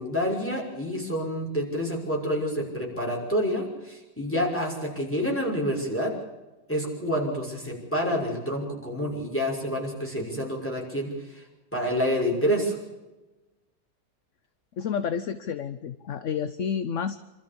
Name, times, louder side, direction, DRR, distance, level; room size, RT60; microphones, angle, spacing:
voice 1, 0.0-6.1 6.7-11.4 11.7-12.8, equal, 5° left, -1 dB, 6.0 m, -28 dB
voice 2, 14.8-17.3, left 7 dB, 55° left, 12 dB, 1.0 m, -30 dB
27.5 x 13.5 x 8.7 m, 1.1 s
omnidirectional pair, 1.9 m